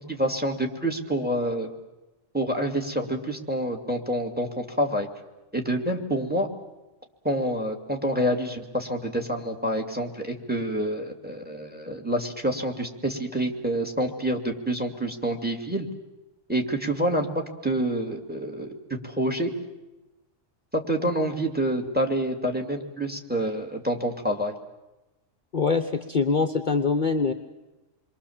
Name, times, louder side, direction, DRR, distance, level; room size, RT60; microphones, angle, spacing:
voice 1, 0.1-1.7 2.3-5.1 5.5-6.5 7.2-15.9 16.5-19.5 20.7-24.5, right 1 dB, 5° right, 4 dB, 2.3 m, -27 dB
voice 2, 25.5-27.3, left 4 dB, 40° left, 6 dB, 1.1 m, -24 dB
28.0 x 23.0 x 7.3 m, 1.0 s
omnidirectional pair, 1.3 m